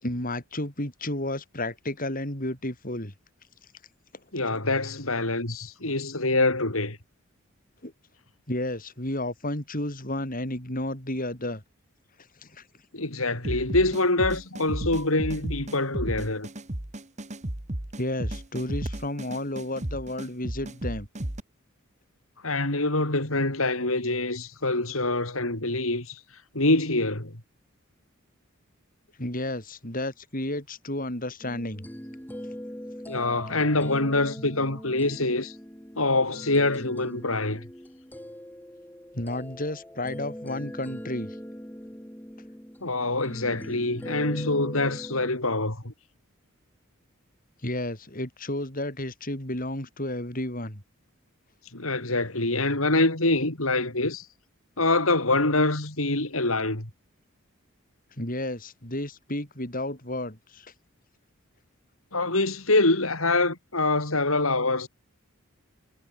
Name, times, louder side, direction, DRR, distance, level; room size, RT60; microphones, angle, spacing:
voice 1, 0.0-3.1 7.8-7.9 8.5-11.6 12.4-12.6 18.0-21.1 29.2-31.9 39.1-41.4 47.6-50.8 58.2-60.7, left 1 dB, 40° left, 6.8 m, -32 dB
voice 2, 4.3-7.0 12.9-16.5 22.4-26.2 26.5-27.3 33.1-35.6 36.0-37.7 42.8-45.9 51.7-54.3 54.8-56.9 62.1-64.9, left 2 dB, 75° left, 5.3 m, -25 dB
sound 1, 13.4-21.4, right 1 dB, 35° right, 1.7 m, -33 dB
sound 2, 31.4-45.3, equal, 10° left, 4.1 m, -41 dB
head